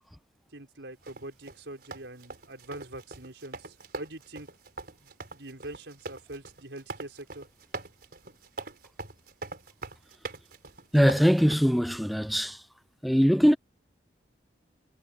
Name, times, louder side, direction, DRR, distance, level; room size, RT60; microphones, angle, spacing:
voice 1, 0.5-4.5 5.0-7.5, right 1 dB, 85° right, 5.1 m, -44 dB
sound 1, 1.1-11.6, right 3 dB, 60° right, 4.7 m, -42 dB
voice 2, 10.9-12.6 13.0-13.6, equal, ahead, 0.5 m, -22 dB
head